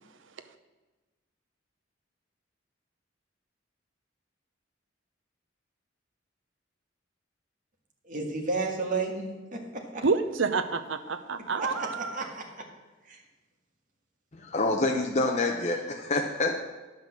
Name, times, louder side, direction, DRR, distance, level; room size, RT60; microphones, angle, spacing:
voice 1, 8.0-10.0 11.6-12.5 13.1-13.2, right 3 dB, 45° right, 0 dB, 1.7 m, -32 dB
voice 2, 10.0-12.2, right 4 dB, 80° right, 9 dB, 0.8 m, -28 dB
voice 3, 14.3-16.6, left 2 dB, 35° left, 2 dB, 0.8 m, -27 dB
10.5 x 5.8 x 7.6 m, 1.2 s
head